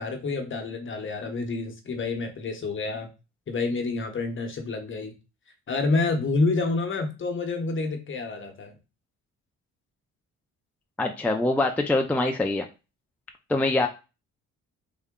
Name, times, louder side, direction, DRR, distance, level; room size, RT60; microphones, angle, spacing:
voice 1, 0.0-3.1 3.5-5.1 5.7-8.7, left 3 dB, 40° left, 5 dB, 0.9 m, -28 dB
voice 2, 11.0-12.7 13.5-13.9, left 2 dB, 5° left, 4 dB, 0.4 m, -24 dB
3.7 x 2.1 x 3.6 m, 0.29 s
cardioid pair, 90°, 30 cm